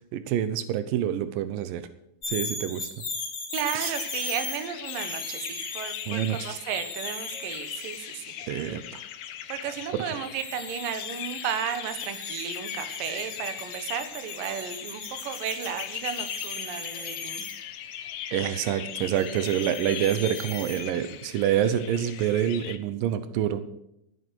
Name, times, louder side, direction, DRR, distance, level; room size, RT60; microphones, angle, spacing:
voice 1, 0.1-1.8 2.3-2.9 3.7-4.0 6.1-6.6 8.5-9.0 9.9-10.0 18.3-23.6, right 10 dB, 85° right, 12 dB, 1.9 m, -27 dB
sound 1, 2.2-8.1 10.2-17.6 19.1-20.8, left 3 dB, 25° left, 3.6 m, -38 dB
voice 2, 3.5-8.4 8.6-8.8 9.5-17.4, right 8 dB, 65° right, 9 dB, 2.4 m, -34 dB
sound 2, 3.8-22.8, left 10 dB, 75° left, 2.0 m, -39 dB
14.0 x 9.6 x 6.2 m, 0.81 s
omnidirectional pair, 5.1 m